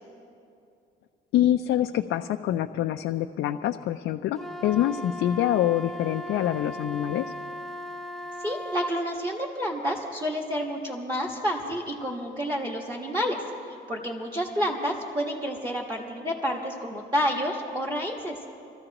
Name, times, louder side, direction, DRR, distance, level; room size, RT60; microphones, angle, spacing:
voice 1, 1.3-7.2, left 12 dB, 80° left, 5 dB, 0.5 m, -25 dB
Wind instrument woodwind instrument, 4.4-9.0, left 1 dB, ahead, 0.6 m, -37 dB
voice 2, 8.4-18.4, equal, 25° right, -1 dB, 1.5 m, -29 dB
27.0 x 13.5 x 3.0 m, 2.5 s
cardioid pair, 90°, 20 cm